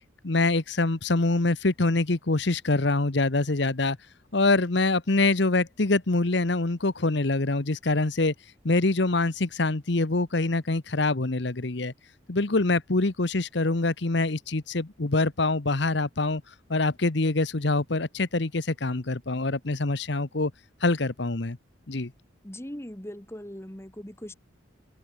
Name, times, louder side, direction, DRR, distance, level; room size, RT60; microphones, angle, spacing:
voice 1, 0.2-4.0 4.3-8.3 8.6-11.9 12.3-16.4 16.7-20.5 20.8-21.6 21.9-22.1, left 2 dB, 60° left, 1.1 m, -25 dB
voice 2, 22.4-24.3, equal, 15° left, 1.4 m, -40 dB
open air
head